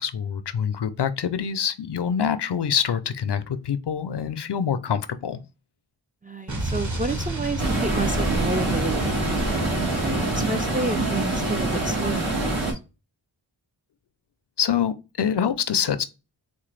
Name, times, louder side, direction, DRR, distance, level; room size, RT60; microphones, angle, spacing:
voice 1, 0.0-5.4 14.6-16.0, left 8 dB, 60° left, 0.5 m, -25 dB
voice 2, 6.2-9.0 9.3-12.7, right 2 dB, 20° right, 0.3 m, -31 dB
Explosion, 6.5-11.3, right 1 dB, 40° right, 1.0 m, -30 dB
sound 1, 7.6-12.7, right 2 dB, 80° right, 1.5 m, -25 dB
4.0 x 2.1 x 3.1 m
wide cardioid pair, 55°, 47 cm